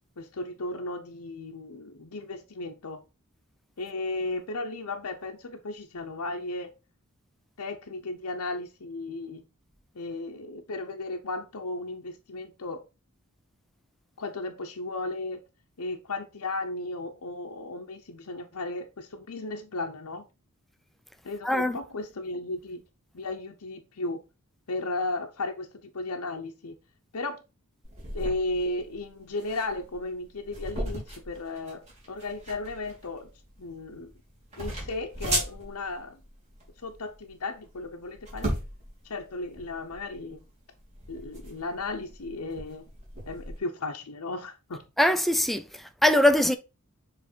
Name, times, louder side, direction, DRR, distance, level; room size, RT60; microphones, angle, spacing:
voice 1, 0.2-3.0 3.8-6.7 7.6-9.4 9.9-12.8 14.2-15.4 15.8-20.3 21.2-22.8 23.1-24.2 24.7-26.7 27.1-27.4 28.1-33.3 33.6-34.1 34.6-36.2 36.8-38.5 39.0-40.4 41.1-42.9 43.3-44.8, left 2 dB, 80° left, 0.8 m, -35 dB
voice 2, 21.4-21.8 45.0-46.6, left 1 dB, ahead, 0.5 m, -22 dB
sound 1, 27.8-43.6, right 1 dB, 30° right, 3.3 m, -37 dB
7.2 x 3.4 x 4.4 m
head